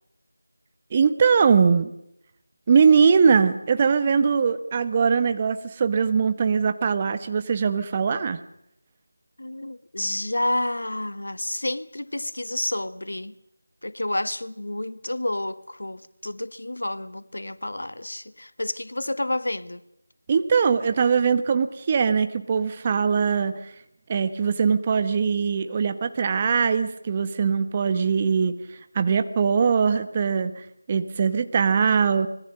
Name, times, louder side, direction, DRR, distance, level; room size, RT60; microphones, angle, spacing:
voice 1, 0.9-1.9 2.7-8.4 20.3-23.7 24.1-28.6 28.9-32.3, right 6 dB, 25° right, 1.1 m, -21 dB
voice 2, 9.4-13.3 13.8-19.8, left 1 dB, 70° left, 1.4 m, -30 dB
26.0 x 21.0 x 6.5 m
figure-of-eight pair, 165°, 0 cm